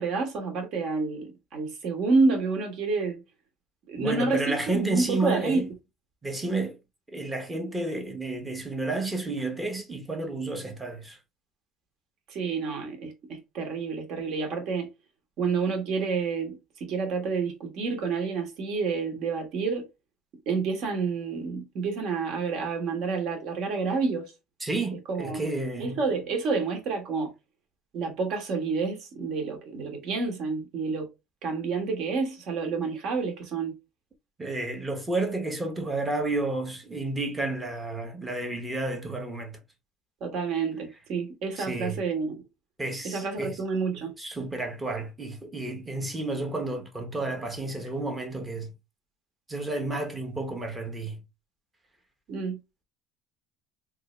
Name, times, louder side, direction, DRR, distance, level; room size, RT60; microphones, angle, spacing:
voice 1, 0.0-3.2 3.9-5.7 12.3-14.9 15.4-19.9 20.5-24.3 25.1-25.4 25.8-27.3 27.9-31.1 31.4-33.8 40.2-42.4 43.0-44.1 52.3-52.6, right 4 dB, 55° right, 1.3 m, -29 dB
voice 2, 4.0-5.7 6.2-6.8 7.1-11.2 24.6-26.0 34.4-39.6 41.6-42.0 42.8-43.6 44.2-48.7 49.5-51.2, right 2 dB, 10° right, 0.9 m, -31 dB
3.6 x 2.7 x 3.1 m
cardioid pair, 150°, 0 cm